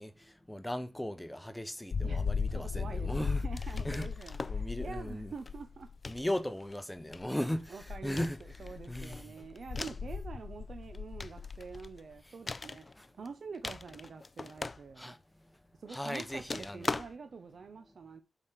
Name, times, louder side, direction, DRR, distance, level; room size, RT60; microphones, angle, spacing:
voice 1, 0.0-3.5 3.8-4.1 4.5-5.3 6.0-8.4 8.9-9.4 12.3-12.4 12.9-13.1 15.0-15.2 15.9-16.9, left 1 dB, 5° left, 0.9 m, -37 dB
sound 1, 1.9-6.2 7.1-7.2 7.8-12.2, left 5 dB, 65° left, 0.9 m, -37 dB
voice 2, 2.5-5.9 7.3-8.3 8.6-15.1 15.8-18.2, right 5 dB, 55° right, 1.0 m, -46 dB
sound 2, 3.6-4.7 5.4-5.6 6.0-6.8 7.1-7.6 8.2-10.1 10.8-12.0 12.5-13.3 13.5-15.2 15.9-17.1, left 3 dB, 30° left, 0.4 m, -41 dB
11.5 x 5.1 x 5.8 m
wide cardioid pair, 155°, 0 cm